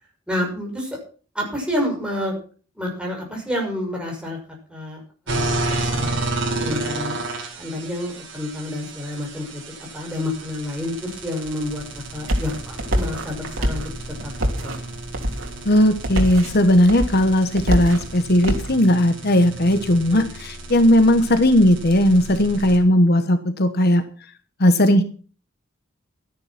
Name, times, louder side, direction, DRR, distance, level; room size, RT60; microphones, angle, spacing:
voice 1, 0.3-1.0 1.3-2.4 2.7-4.4 4.7-5.0 5.3-7.2 7.6-11.8 12.1-13.9 14.2-14.7 20.0-20.3, left 1 dB, 5° right, -1 dB, 6.2 m, -29 dB
sound 1, 5.3-22.8, right 2 dB, 65° right, 5.6 m, -32 dB
sound 2, 11.4-18.8, equal, 85° right, 3.2 m, -26 dB
voice 2, 15.6-24.0 24.6-25.0, left 1 dB, 55° left, 9 dB, 1.2 m, -17 dB
13.0 x 10.5 x 5.9 m, 0.40 s
head